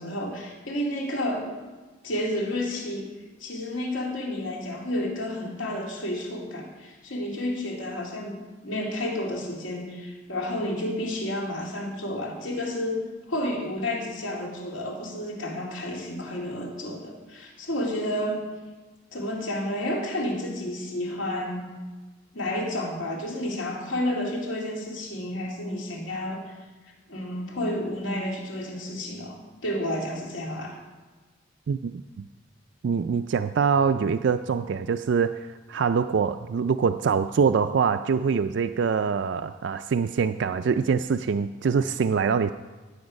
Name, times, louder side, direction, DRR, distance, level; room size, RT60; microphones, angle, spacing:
voice 1, 0.0-1.5 2.0-3.1 3.4-18.5 19.1-21.7 22.3-26.5 27.1-30.8, left 1 dB, 80° left, -1 dB, 2.6 m, -31 dB
voice 2, 32.8-42.5, right 6 dB, 60° right, 9 dB, 0.4 m, -24 dB
16.0 x 7.8 x 5.2 m, 1.3 s
head